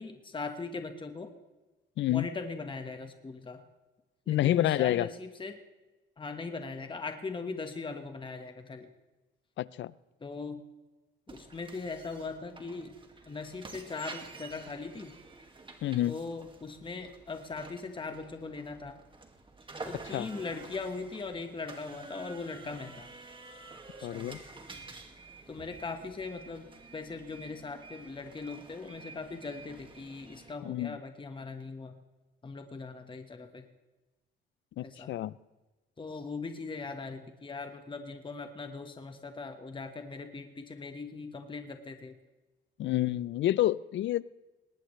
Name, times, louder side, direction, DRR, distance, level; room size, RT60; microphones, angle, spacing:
voice 1, 0.0-1.3 2.1-3.6 4.3-5.6 6.2-8.9 10.2-10.6 11.3-13.0 13.3-15.1 16.1-19.0 19.9-23.1 24.0-24.4 25.5-31.9 32.4-33.6 34.8-35.1 36.0-42.1, left 4 dB, 25° left, 6 dB, 1.4 m, -40 dB
voice 2, 2.0-2.3 4.3-5.1 9.6-9.9 15.8-16.2 20.1-20.3 24.0-24.4 30.6-31.0 34.8-35.3 42.8-44.2, left 13 dB, 70° left, 20 dB, 0.5 m, -28 dB
sound 1, 11.3-30.5, right 3 dB, 25° right, 2.1 m, -49 dB
20.0 x 18.5 x 3.3 m, 1.1 s
cardioid pair, 90°, 20 cm